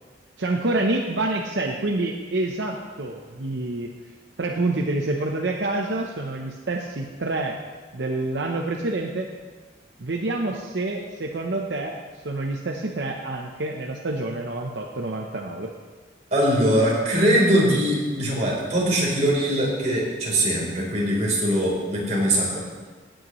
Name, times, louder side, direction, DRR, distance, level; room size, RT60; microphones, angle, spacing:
voice 1, 0.4-3.9 4.4-7.6 7.9-9.3 10.0-12.0 12.2-15.7, right 2 dB, 80° right, 2 dB, 0.8 m, -27 dB
voice 2, 16.3-22.6, right 1 dB, 40° right, -4 dB, 3.7 m, -21 dB
16.5 x 8.9 x 3.1 m, 1.4 s
head